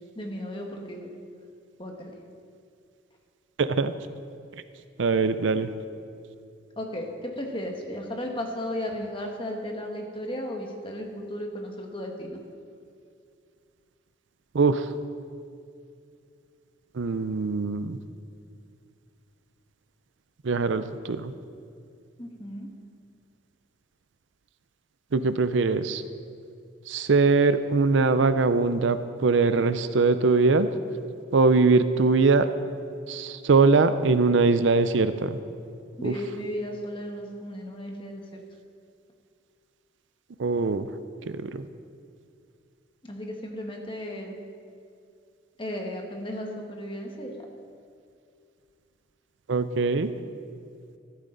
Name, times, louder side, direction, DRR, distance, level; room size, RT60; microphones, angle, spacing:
voice 1, 0.1-1.1 1.8-2.1 6.8-12.4 22.2-22.7 36.0-38.4 43.1-44.3 45.6-47.3, left 1 dB, 25° left, 2 dB, 1.4 m, -35 dB
voice 2, 3.6-3.9 5.0-5.7 14.5-14.9 16.9-18.0 20.4-21.3 25.1-26.0 26.9-30.7 31.3-32.5 33.1-35.4 36.0-36.2 40.4-40.9 41.3-41.6 49.5-50.1, right 4 dB, 70° right, 12 dB, 0.5 m, -22 dB
13.5 x 13.0 x 3.9 m, 2.4 s
head